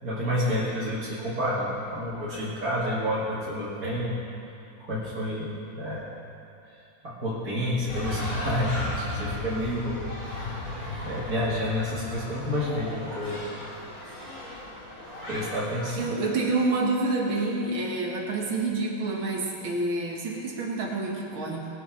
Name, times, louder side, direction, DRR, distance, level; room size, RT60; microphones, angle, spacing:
voice 1, 0.0-4.2 4.9-6.1 7.0-10.0 11.0-13.4 15.3-16.1, equal, 45° right, -10 dB, 2.7 m, -29 dB
sound 1, 7.9-15.9, left 2 dB, 45° left, 4.3 m, -35 dB
voice 2, 15.9-21.7, right 3 dB, 90° right, -2 dB, 2.6 m, -28 dB
20.5 x 7.7 x 6.0 m, 2.8 s
omnidirectional pair, 2.1 m